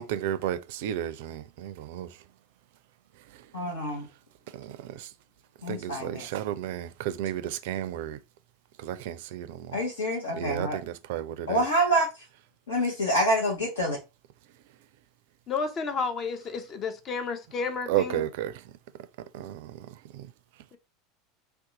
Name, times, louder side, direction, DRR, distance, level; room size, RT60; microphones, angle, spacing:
voice 1, 0.0-2.1 4.5-4.7 5.7-8.2 8.8-9.7 10.4-11.6 17.9-18.5 19.3-19.6, right 11 dB, 60° right, 0.4 m, -32 dB
voice 2, 3.5-4.1 5.6-6.3 9.7-10.8 11.5-12.1 12.7-14.0, equal, 75° left, 0.9 m, -26 dB
voice 3, 15.5-18.3 20.7-20.8, left 5 dB, 35° left, 0.6 m, -31 dB
2.6 x 2.3 x 3.7 m
figure-of-eight pair, 80°, 0 cm